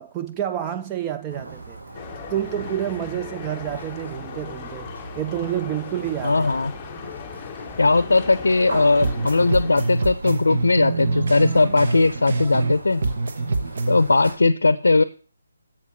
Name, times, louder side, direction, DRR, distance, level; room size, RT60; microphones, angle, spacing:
voice 1, 0.0-1.8 2.3-6.5, right 11 dB, 20° right, 0.3 m, -29 dB
sound 1, 1.3-14.3, right 2 dB, 70° right, 3.8 m, -39 dB
sound 2, 1.9-10.0, left 9 dB, 20° left, 0.6 m, -38 dB
voice 2, 6.2-6.7 7.8-13.0 13.9-15.0, left 3 dB, 75° left, 0.5 m, -18 dB
sound 3, 9.0-12.8 13.0-14.0, right 3 dB, 55° right, 1.0 m, -25 dB
7.4 x 6.2 x 5.6 m
figure-of-eight pair, 150°, 0 cm